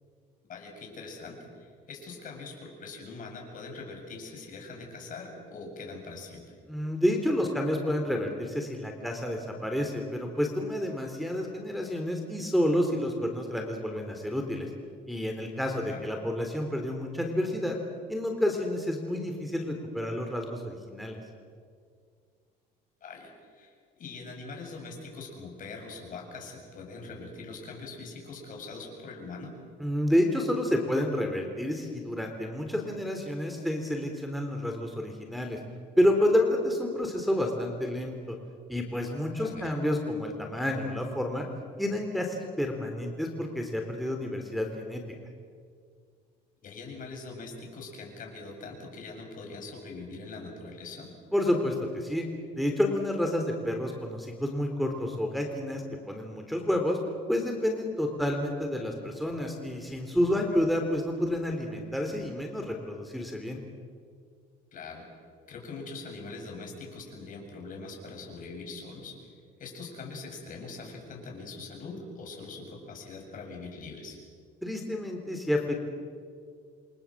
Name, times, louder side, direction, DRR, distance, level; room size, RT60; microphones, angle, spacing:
voice 1, 0.5-6.5 15.9-16.1 23.0-29.6 39.3-39.8 46.6-51.1 64.7-65.1 65.5-69.3 69.6-74.2, left 3 dB, 50° left, 1 dB, 7.7 m, -42 dB
voice 2, 6.7-14.7 15.1-17.8 18.1-21.2 29.8-35.6 36.0-38.4 38.7-41.5 41.8-45.0 51.3-52.3 52.5-57.0 57.3-63.6 74.6-75.8, left 1 dB, ahead, 2 dB, 3.8 m, -29 dB
29.0 x 24.5 x 7.7 m, 2.1 s
cardioid pair, 110°, 17 cm